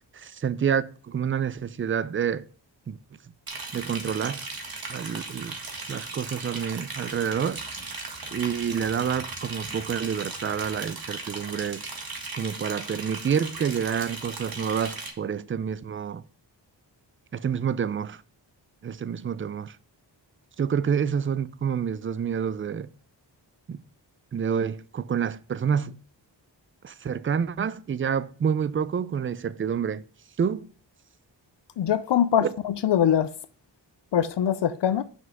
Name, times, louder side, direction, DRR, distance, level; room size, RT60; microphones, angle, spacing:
voice 1, 0.1-2.5 2.9-3.0 3.7-4.5 4.9-5.6 5.9-7.6 8.3-11.8 12.3-16.3 17.3-18.2 18.8-19.8 20.6-22.9 23.7-23.8 24.3-26.0 26.8-30.0 30.4-30.7 32.4-32.5, right 7 dB, 30° right, 0.4 m, -28 dB
Liquid, 3.5-15.1, right 3 dB, 50° right, 1.7 m, -37 dB
voice 2, 31.8-33.3 34.1-35.0, left 9 dB, 70° left, 0.6 m, -23 dB
6.1 x 5.3 x 4.7 m
cardioid pair, 60°, 45 cm